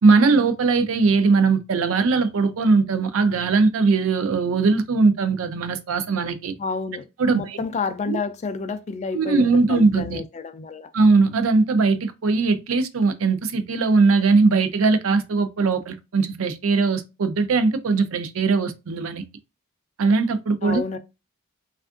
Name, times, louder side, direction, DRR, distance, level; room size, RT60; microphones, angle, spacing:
voice 1, 0.0-6.5 7.2-7.6 8.1-8.2 9.1-10.2 10.9-19.2 20.0-20.8, right 4 dB, 85° right, 0.5 m, -20 dB
voice 2, 6.6-7.1 7.3-10.9 20.6-21.0, left 4 dB, 35° left, 0.3 m, -29 dB
3.4 x 2.4 x 2.4 m
head